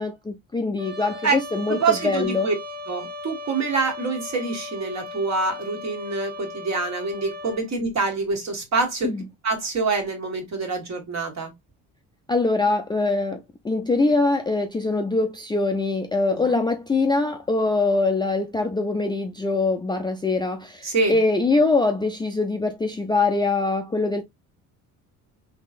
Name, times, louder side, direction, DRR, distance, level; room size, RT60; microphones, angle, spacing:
voice 1, 0.0-1.8 2.0-2.5 9.0-9.2 12.3-13.4 13.6-24.2, left 3 dB, 15° left, 0.4 m, -23 dB
Trumpet, 0.8-7.6, left 2 dB, 85° right, 1.2 m, -37 dB
voice 2, 1.7-2.5 2.9-9.1 9.4-11.5 16.3-16.4 20.8-21.2, right 4 dB, 45° right, 1.6 m, -25 dB
3.6 x 2.9 x 2.4 m
supercardioid pair, 85°, 36 cm